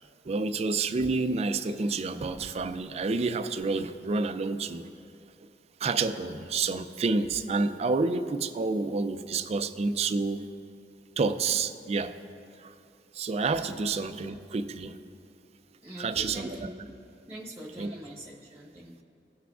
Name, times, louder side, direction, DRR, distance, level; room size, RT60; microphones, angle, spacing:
voice 1, 0.3-4.9 5.8-10.5 11.2-12.2 12.6-12.7 13.1-15.0 16.0-16.7 17.8-17.9, right 3 dB, 35° right, 10 dB, 0.4 m, -29 dB
voice 2, 15.8-16.9 17.3-19.0, right 1 dB, 15° right, -4 dB, 1.0 m, -43 dB
17.0 x 5.9 x 2.4 m, 2.6 s
head